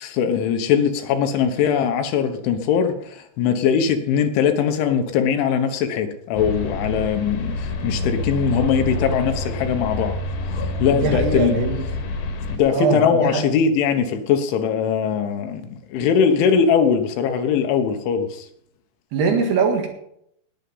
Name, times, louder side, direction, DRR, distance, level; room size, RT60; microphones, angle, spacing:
voice 1, 0.0-10.2 10.8-11.6 12.5-18.5, left 7 dB, 75° left, 7 dB, 3.4 m, -21 dB
sound 1, 6.4-12.6, left 2 dB, 60° left, 3.2 m, -27 dB
voice 2, 10.9-11.8 12.7-13.4 19.1-19.9, right 4 dB, 60° right, 3 dB, 3.4 m, -21 dB
18.5 x 8.1 x 5.6 m, 0.73 s
omnidirectional pair, 5.7 m